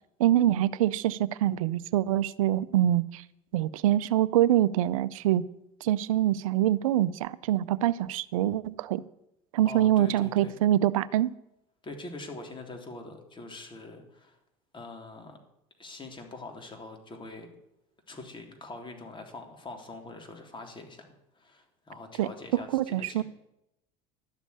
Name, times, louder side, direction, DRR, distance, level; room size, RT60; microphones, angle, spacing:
voice 1, 0.2-3.2 3.5-5.4 5.8-9.0 9.5-11.3 22.2-23.2, right 13 dB, 85° right, 17 dB, 0.5 m, -25 dB
voice 2, 9.7-10.6 11.8-14.4 14.7-15.4 15.8-17.5 18.1-23.2, left 3 dB, 30° left, 4 dB, 3.4 m, -43 dB
12.0 x 7.2 x 9.8 m, 0.84 s
hypercardioid pair, 80°, 17 cm